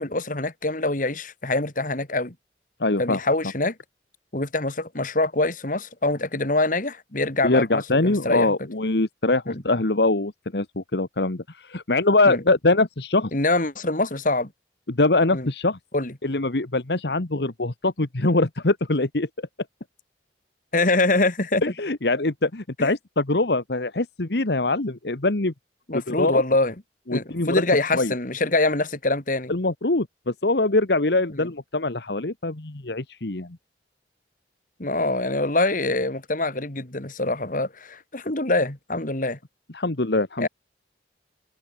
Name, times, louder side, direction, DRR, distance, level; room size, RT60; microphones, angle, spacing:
voice 1, 0.0-2.3 3.0-3.7 4.3-8.5 9.5-9.6 12.2-12.4 13.3-14.5 15.3-15.5 15.9-16.1 20.7-21.6 22.8-22.9 25.9-26.7 27.1-29.5 31.3-31.5 34.8-39.4 40.4-40.5, left 2 dB, 50° left, 2.7 m, -24 dB
voice 2, 2.8-3.2 7.4-13.3 14.9-15.8 16.2-19.3 21.6-25.5 25.9-26.4 27.1-27.6 27.9-28.1 29.5-33.6 39.7-40.5, left 2 dB, 70° left, 1.5 m, -23 dB
head